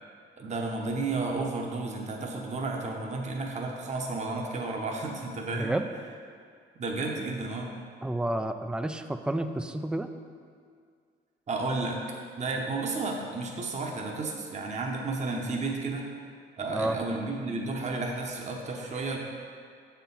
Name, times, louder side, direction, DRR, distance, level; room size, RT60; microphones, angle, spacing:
voice 1, 0.4-5.7 6.8-7.7 11.5-12.0 12.4-16.1 16.6-19.2, right 3 dB, 35° right, 0 dB, 0.9 m, -32 dB
voice 2, 5.5-5.8 8.0-10.1 16.7-17.0, right 1 dB, 5° right, 8 dB, 0.3 m, -30 dB
7.0 x 4.4 x 5.4 m, 2.2 s
cardioid pair, 90°, 20 cm